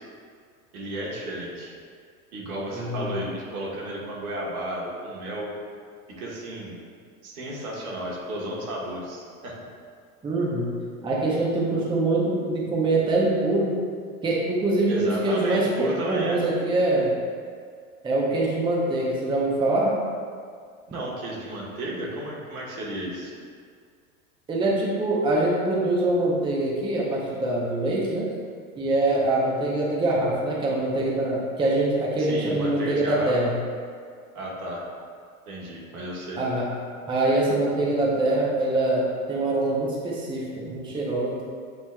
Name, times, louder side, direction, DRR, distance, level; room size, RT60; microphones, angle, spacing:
voice 1, 0.7-1.7 2.3-5.5 6.2-6.7 7.2-9.7 14.9-16.4 20.9-23.3 32.2-33.3 34.3-34.8 35.5-36.4, right 1 dB, 85° right, -4 dB, 1.3 m, -33 dB
voice 2, 2.7-3.1 10.2-10.8 11.0-13.7 14.2-17.2 18.0-20.0 24.5-28.3 28.8-33.6 36.4-36.7 37.1-41.4, right 2 dB, 10° right, -4 dB, 0.6 m, -24 dB
7.0 x 2.9 x 2.2 m, 2.1 s
hypercardioid pair, 115°, 43 cm